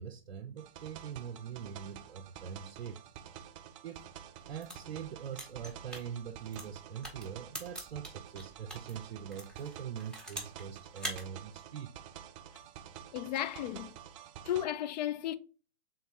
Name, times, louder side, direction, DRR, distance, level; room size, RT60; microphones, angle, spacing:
voice 1, 0.0-3.0 3.8-4.0 4.5-11.9, right 8 dB, 75° right, 0.6 m, -43 dB
sound 1, 0.6-14.6, right 10 dB, 35° right, 0.4 m, -50 dB
sound 2, 4.5-8.9 9.3-10.6 10.9-11.2, right 1 dB, 5° left, 1.1 m, -43 dB
voice 2, 13.1-14.0 14.4-15.3, left 12 dB, 45° left, 0.4 m, -34 dB
3.7 x 3.3 x 4.2 m
hypercardioid pair, 120°, 30 cm